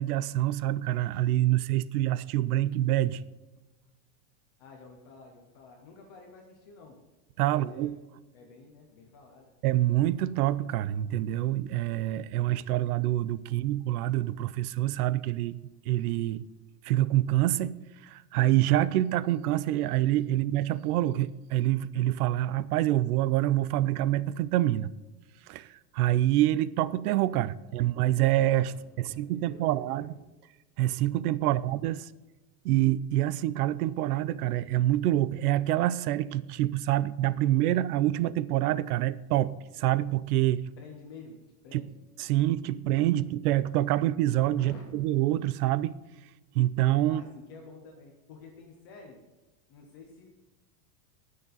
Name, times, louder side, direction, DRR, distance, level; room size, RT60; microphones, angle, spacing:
voice 1, 0.0-3.2 7.4-8.0 9.6-15.6 15.9-16.5 16.8-17.7 18.0-24.9 25.5-30.1 30.8-32.0 32.6-40.7 41.7-41.8 42.2-46.0 46.5-47.2, right 14 dB, 65° right, 0.6 m, -26 dB
voice 2, 4.6-7.0 7.5-9.5 13.5-13.6 20.3-20.4 28.7-30.0 31.4-31.6 40.8-41.4 41.6-41.9 44.6-44.8 47.1-49.2 49.7-50.3, left 4 dB, 15° left, 0.3 m, -50 dB
19.5 x 6.7 x 4.0 m
supercardioid pair, 175°, 49 cm